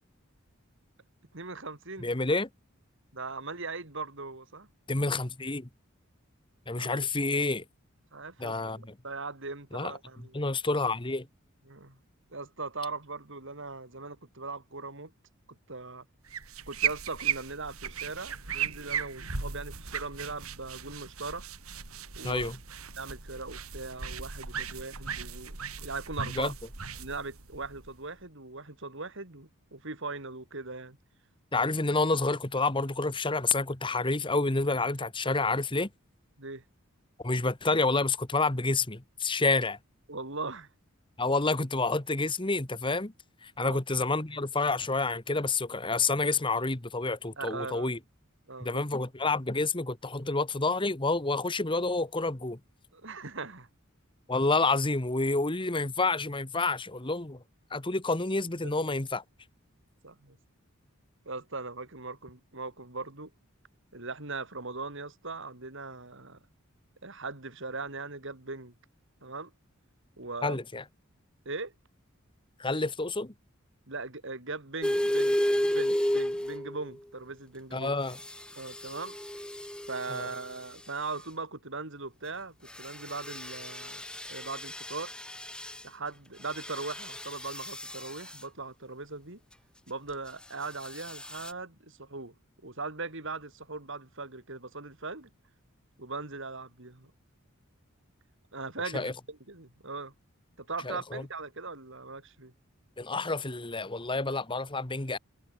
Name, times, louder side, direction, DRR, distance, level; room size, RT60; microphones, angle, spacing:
voice 1, 1.3-2.1 3.1-4.7 6.8-7.0 8.1-10.4 11.7-12.0 12.3-15.1 15.7-16.1 16.7-21.5 22.1-22.5 23.0-26.5 27.0-31.0 36.4-36.6 40.1-40.7 43.6-43.8 47.4-47.9 48.5-48.8 52.9-53.7 58.6-58.9 60.0-60.4 61.3-63.3 63.9-66.4 67.0-68.7 69.2-69.5 70.2-70.6 71.5-71.7 73.9-77.9 78.6-79.2 79.9-85.1 85.8-89.4 89.9-92.3 92.6-95.3 96.0-97.1 98.5-100.1 100.6-102.5, right 3 dB, 60° right, 3.4 m, -39 dB
voice 2, 2.0-2.5 4.9-5.7 6.7-7.6 8.4-8.8 9.7-9.9 10.3-11.3 22.2-22.6 26.4-26.5 31.5-35.9 37.2-39.8 41.2-43.1 43.4-48.0 48.6-52.6 54.3-57.4 57.7-59.2 70.4-70.8 72.6-73.3 77.7-78.2 80.1-80.3 98.9-99.1 100.8-101.2 103.0-105.2, left 3 dB, 25° left, 1.5 m, -29 dB
sound 1, 16.3-28.2, right 7 dB, 90° right, 3.1 m, -37 dB
sound 2, 74.8-76.9 78.1-80.5 82.7-85.8 86.4-88.4 90.8-91.5, equal, 5° left, 0.9 m, -33 dB
head